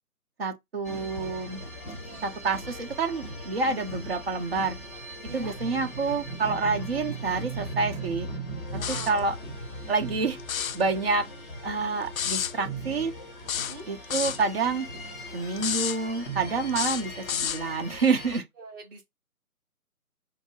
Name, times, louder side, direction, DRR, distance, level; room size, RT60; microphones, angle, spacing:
voice 1, 0.4-1.6 2.2-4.8 5.3-8.3 8.9-9.3 9.9-10.4 10.7-11.3 11.6-13.1 13.9-14.9 15.3-18.4, right 4 dB, 40° right, 1.0 m, -28 dB
sound 1, 0.8-18.4, right 2 dB, 10° left, 0.8 m, -39 dB
voice 2, 5.3-5.6 8.7-9.2 13.5-13.9 18.6-19.0, right 2 dB, 15° right, 0.9 m, -42 dB
sound 2, 8.8-9.2 10.4-10.8 12.2-12.5 13.5-14.4 15.6-16.0 16.7-17.6, left 8 dB, 65° left, 0.5 m, -30 dB
5.1 x 2.0 x 4.6 m
figure-of-eight pair, 150°, 44 cm